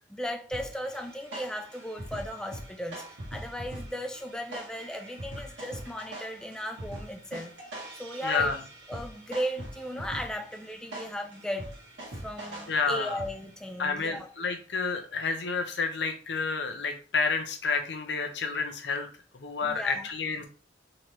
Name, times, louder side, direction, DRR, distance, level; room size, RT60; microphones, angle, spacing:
voice 1, 0.1-3.0 3.3-7.5 8.0-8.5 8.9-11.7 12.2-14.3 19.6-20.1, equal, 5° left, 0.3 m, -36 dB
sound 1, 0.5-13.7, right 1 dB, 85° right, 1.6 m, -43 dB
voice 2, 8.2-8.6 12.7-13.2 13.8-19.1 19.3-20.5, left 4 dB, 70° left, 0.7 m, -30 dB
3.9 x 3.1 x 3.1 m
head